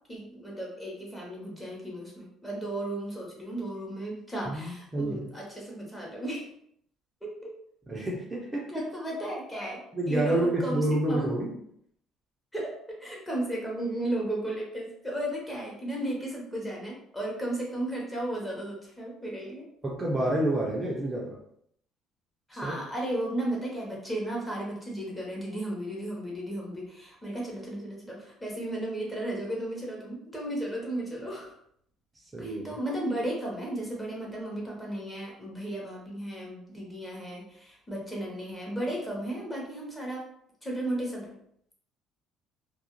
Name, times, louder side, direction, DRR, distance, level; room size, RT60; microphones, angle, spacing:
voice 1, 0.1-6.5 7.2-7.5 8.7-11.3 12.5-19.7 22.5-31.5 32.4-40.2 40.6-41.3, right 1 dB, 10° left, -3 dB, 0.9 m, -34 dB
voice 2, 4.5-5.3 7.9-8.8 9.9-11.5 19.8-21.4 22.5-22.7 32.3-32.8, right 1 dB, 20° right, -3 dB, 0.5 m, -29 dB
2.4 x 2.0 x 2.9 m, 0.69 s
cardioid pair, 110°, 0 cm